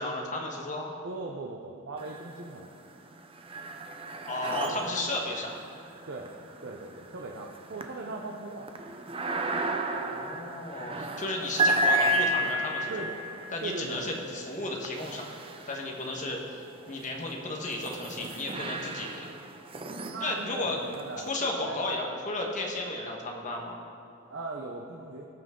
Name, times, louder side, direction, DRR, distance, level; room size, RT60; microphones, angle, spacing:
voice 1, 0.0-0.9 4.3-5.6 9.9-12.9 13.5-15.3 15.7-16.6 16.9-19.3 20.2-20.8 21.2-23.8, left 2 dB, 40° left, 0 dB, 1.4 m, -34 dB
voice 2, 1.0-2.7 4.5-5.0 6.1-6.3 6.6-8.7 12.9-13.2 13.6-14.2 20.1-21.8 24.3-25.3, right 3 dB, 60° right, 0 dB, 0.7 m, -39 dB
sound 1, 2.0-2.7 3.0-16.2 16.8-21.3, right 1 dB, 25° right, 0.6 m, -33 dB
18.0 x 6.1 x 3.8 m, 2.5 s
head